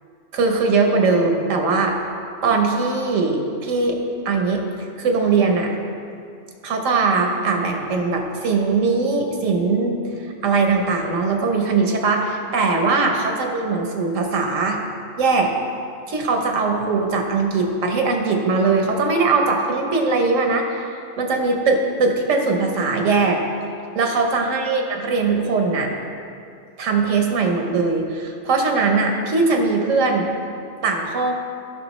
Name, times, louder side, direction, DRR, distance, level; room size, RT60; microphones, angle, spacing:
voice 1, 0.3-2.0 2.4-4.0 4.2-5.7 6.6-10.0 10.4-14.8 15.2-15.5 16.1-23.4 23.9-25.9 26.8-30.3 30.8-31.3, right 4 dB, 80° right, 2 dB, 1.2 m, -20 dB
10.5 x 5.9 x 3.1 m, 2.4 s
omnidirectional pair, 1.3 m